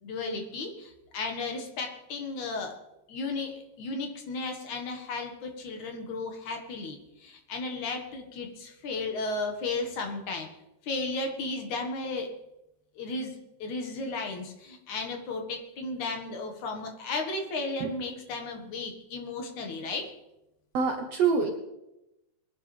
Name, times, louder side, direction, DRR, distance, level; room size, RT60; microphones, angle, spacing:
voice 1, 0.0-2.8 3.1-10.5 10.8-12.3 13.0-13.3 13.6-20.1, left 3 dB, 65° left, 3 dB, 2.8 m, -34 dB
voice 2, 20.7-21.5, right 5 dB, 65° right, 4 dB, 1.7 m, -25 dB
22.5 x 11.0 x 3.3 m, 0.91 s
omnidirectional pair, 4.0 m